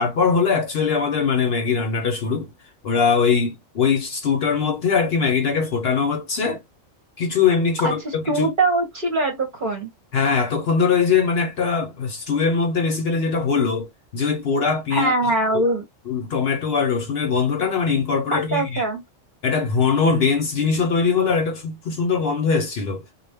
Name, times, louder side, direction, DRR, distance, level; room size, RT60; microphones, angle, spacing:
voice 1, 0.0-2.5 2.8-6.6 7.2-8.5 10.1-13.9 14.1-15.1 16.1-18.9 19.4-23.0, left 5 dB, 55° left, 0.8 m, -21 dB
voice 2, 8.3-9.9 14.9-15.9 18.3-19.0, right 2 dB, 45° right, 0.8 m, -22 dB
2.2 x 2.1 x 3.3 m
omnidirectional pair, 1.4 m